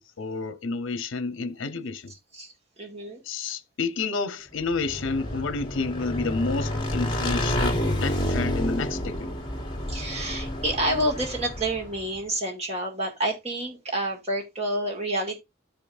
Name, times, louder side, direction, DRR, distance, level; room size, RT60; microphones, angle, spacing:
voice 1, 0.2-2.1 3.2-9.3, left 4 dB, 75° left, 0.7 m, -30 dB
voice 2, 2.3-3.2 9.9-15.4, right 1 dB, 30° right, 1.9 m, -29 dB
Motorcycle / Engine, 4.7-12.0, left 1 dB, 25° left, 1.6 m, -29 dB
14.5 x 5.2 x 2.5 m
head